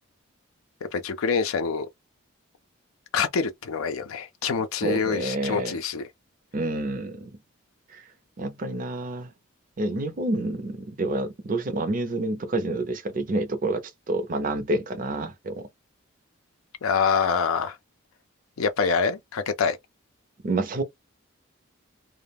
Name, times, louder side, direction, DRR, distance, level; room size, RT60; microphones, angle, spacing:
voice 1, 0.9-1.9 3.1-6.1 16.8-17.8 18.6-19.8, left 5 dB, 85° left, 0.4 m, -25 dB
voice 2, 4.8-5.8 6.5-7.3 7.9-8.0 8.4-9.3 9.8-15.6 20.4-20.8, right 2 dB, 40° right, 0.5 m, -28 dB
2.3 x 2.0 x 3.4 m
head